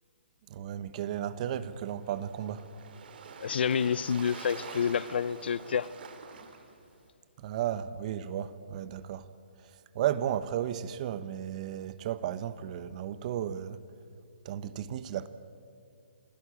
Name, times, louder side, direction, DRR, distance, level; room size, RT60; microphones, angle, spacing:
voice 1, 0.5-2.6 7.4-9.2 9.9-13.8 14.4-15.3, right 10 dB, 40° right, 1.1 m, -34 dB
Waves surf, 1.4-7.1, right 5 dB, 60° right, 3.0 m, -47 dB
voice 2, 3.4-5.9, left 7 dB, 65° left, 0.7 m, -28 dB
27.5 x 16.5 x 8.6 m
hypercardioid pair, 150°, 6 cm